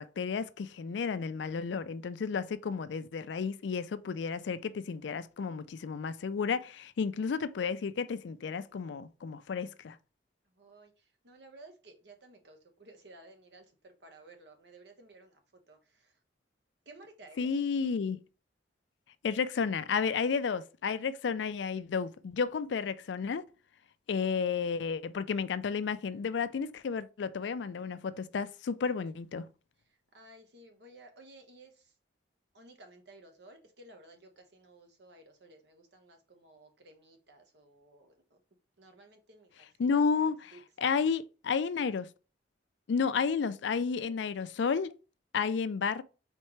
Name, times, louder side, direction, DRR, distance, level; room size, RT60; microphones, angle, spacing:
voice 1, 0.0-10.0 17.4-18.2 19.2-23.4 24.1-29.5 39.8-40.5 40.8-42.1 42.9-44.9 45.3-46.0, left 5 dB, 70° left, 0.4 m, -32 dB
voice 2, 10.5-15.4 15.7-16.2 16.8-17.5 29.9-31.9 32.5-38.4 38.8-40.0 40.5-40.6, right 2 dB, 65° right, 1.0 m, -56 dB
4.4 x 3.7 x 3.1 m
head